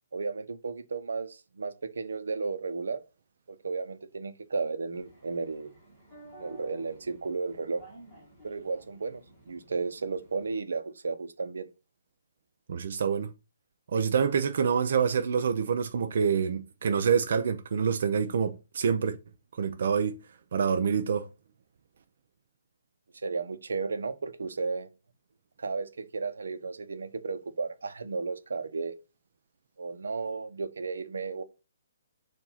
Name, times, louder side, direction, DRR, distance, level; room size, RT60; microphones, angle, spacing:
voice 1, 0.1-3.0 3.5-5.7 6.4-7.8 8.4-11.7 23.2-24.9 25.6-29.0 29.8-31.4, right 4 dB, 80° right, 0.9 m, -34 dB
sound 1, 4.9-10.6, right 2 dB, ahead, 1.7 m, -52 dB
voice 2, 12.7-13.3 13.9-19.2 19.6-20.2 20.5-21.3, right 6 dB, 45° right, 0.5 m, -26 dB
7.1 x 2.6 x 5.7 m
hypercardioid pair, 175°, 0 cm